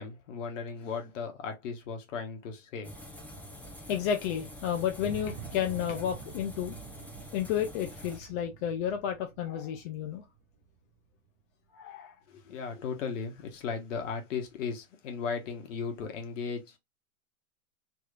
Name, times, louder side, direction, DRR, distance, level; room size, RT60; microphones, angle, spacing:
voice 1, 0.0-2.9 12.3-16.8, left 5 dB, 55° left, 1.3 m, -36 dB
sound 1, 2.8-8.2, equal, 5° left, 0.7 m, -46 dB
voice 2, 3.9-6.8 7.3-10.2 11.7-12.1, left 9 dB, 35° left, 0.6 m, -31 dB
sound 2, 5.0-11.1, right 9 dB, 35° right, 0.7 m, -47 dB
3.3 x 3.1 x 2.4 m
hypercardioid pair, 110°, 44 cm